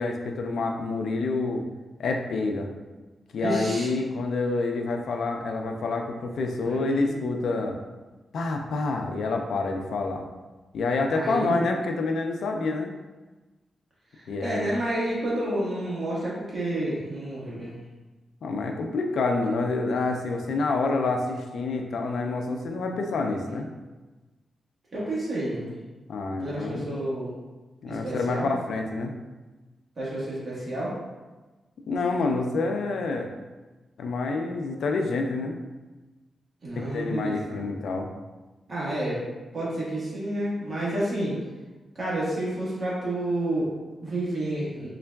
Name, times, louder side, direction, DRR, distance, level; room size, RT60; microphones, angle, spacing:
voice 1, 0.0-1.7 2.0-2.7 3.3-7.8 8.3-10.2 10.7-12.9 14.3-14.7 18.4-23.7 26.1-26.9 27.8-29.2 31.9-33.3 34.0-35.6 36.9-38.1, left 3 dB, 80° left, 3 dB, 0.4 m, -27 dB
voice 2, 3.4-3.9 6.6-7.1 11.1-11.7 14.1-17.7 24.9-25.7 26.4-27.3 27.9-28.5 30.0-31.0 36.6-37.6 38.7-39.2 39.5-41.4 41.9-44.9, right 1 dB, 40° right, -7 dB, 1.2 m, -30 dB
3.8 x 3.4 x 2.2 m, 1.2 s
wide cardioid pair, 125°, 0 cm